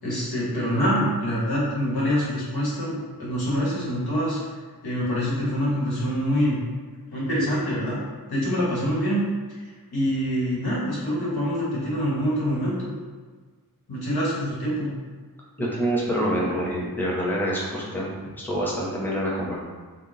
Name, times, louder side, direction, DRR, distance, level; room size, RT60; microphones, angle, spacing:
voice 1, 0.0-4.4 4.8-6.6 7.1-8.0 8.3-9.2 9.5-9.6 9.9-12.9 13.9-14.9, equal, 90° left, -7 dB, 1.2 m, -25 dB
voice 2, 15.6-18.1 18.4-19.5, equal, 5° left, -5 dB, 0.8 m, -26 dB
3.6 x 2.1 x 3.8 m, 1.4 s
wide cardioid pair, 95°, 37 cm